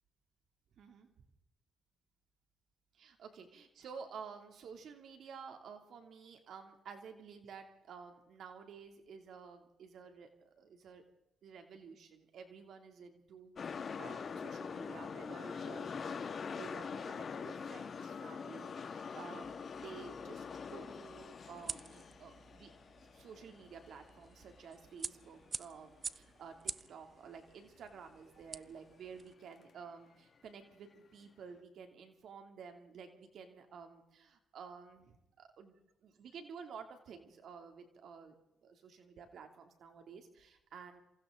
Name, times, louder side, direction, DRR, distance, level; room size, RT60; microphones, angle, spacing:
voice 1, 0.8-1.1 2.9-11.0 11.4-16.2 16.5-22.7 23.1-35.7 36.0-38.3 38.6-41.0, right 6 dB, 65° right, 5 dB, 2.9 m, -52 dB
sound 1, 13.6-25.6 25.9-26.0, left 6 dB, 45° left, 2.0 m, -44 dB
sound 2, 19.4-29.3, right 5 dB, 40° right, 0.8 m, -49 dB
28.0 x 27.5 x 3.9 m, 0.93 s
cardioid pair, 90°, 0 cm